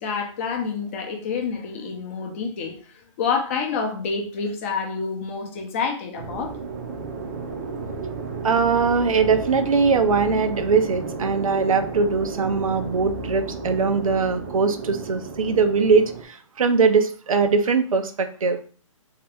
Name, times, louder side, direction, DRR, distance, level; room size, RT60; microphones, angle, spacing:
voice 1, 0.0-6.6, left 5 dB, 25° left, 0.6 m, -28 dB
sound 1, 6.2-16.2, right 4 dB, 30° right, 0.6 m, -33 dB
voice 2, 8.4-18.6, right 5 dB, 90° right, 0.6 m, -21 dB
3.4 x 2.8 x 3.4 m
hypercardioid pair, 165°, 17 cm